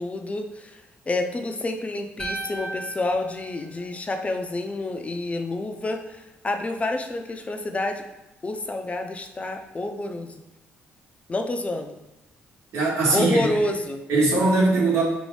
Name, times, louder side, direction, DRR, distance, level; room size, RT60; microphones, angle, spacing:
voice 1, 0.0-8.0 8.4-10.4 11.3-12.0 13.1-14.0, left 2 dB, 30° left, 5 dB, 0.4 m, -28 dB
sound 1, 2.2-4.5, right 2 dB, 5° right, 0.8 m, -36 dB
voice 2, 12.7-13.5 14.1-15.0, right 3 dB, 75° right, -3 dB, 1.0 m, -20 dB
3.0 x 2.7 x 3.2 m, 0.99 s
supercardioid pair, 70°, 5 cm